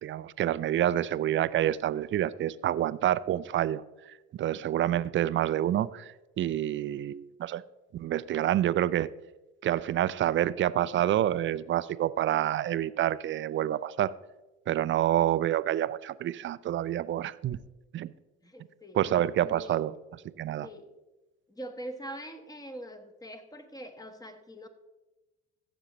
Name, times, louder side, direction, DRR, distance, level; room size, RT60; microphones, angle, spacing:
voice 1, 0.0-3.8 4.3-7.6 7.9-9.1 9.6-14.1 14.7-17.6 17.9-18.1 18.9-19.9 20.4-20.7, right 12 dB, 35° right, 18 dB, 0.4 m, -28 dB
voice 2, 18.4-19.0 19.4-19.9 20.6-20.9 21.5-24.7, right 1 dB, 10° left, 8 dB, 1.3 m, -43 dB
15.0 x 7.2 x 3.1 m, 1.1 s
hypercardioid pair, 65°, 33 cm